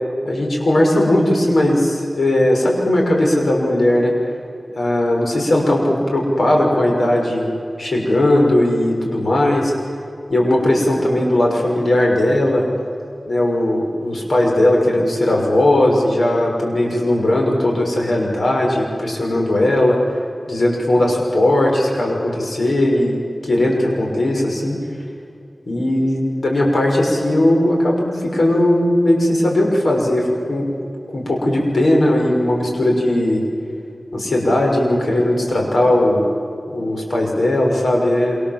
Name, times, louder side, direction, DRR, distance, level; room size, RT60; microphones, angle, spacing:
voice 1, 0.2-4.1 4.8-7.5 7.8-9.7 10.3-12.7 13.3-20.0 20.5-24.8 25.7-30.7 31.1-33.4 34.1-36.2 36.7-38.4, left 1 dB, 85° left, 0 dB, 6.1 m, -17 dB
27.5 x 26.0 x 7.7 m, 2.5 s
wide cardioid pair, 70°, 0 cm